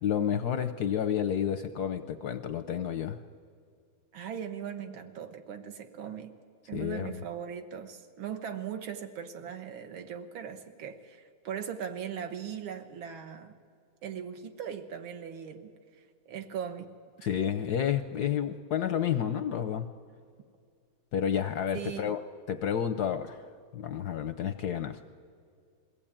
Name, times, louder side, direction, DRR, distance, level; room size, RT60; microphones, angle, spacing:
voice 1, 0.0-3.2 6.7-7.2 17.2-19.9 21.1-22.2 22.5-23.4 23.7-25.0, left 9 dB, 70° left, 9 dB, 1.0 m, -30 dB
voice 2, 4.1-6.3 6.7-13.6 14.0-15.7 16.3-16.9 21.7-22.2, right 8 dB, 75° right, 7 dB, 1.9 m, -39 dB
22.0 x 16.0 x 8.8 m, 2.2 s
omnidirectional pair, 2.3 m